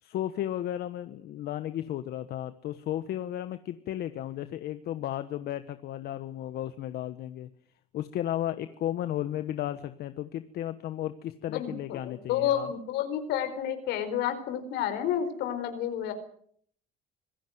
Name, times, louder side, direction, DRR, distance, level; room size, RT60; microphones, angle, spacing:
voice 1, 0.0-7.5 7.9-12.7, left 12 dB, 70° left, 11 dB, 1.2 m, -34 dB
voice 2, 11.5-16.1, left 10 dB, 90° left, 9 dB, 4.4 m, -30 dB
25.5 x 17.0 x 8.0 m, 0.64 s
cardioid pair, 110°, 17 cm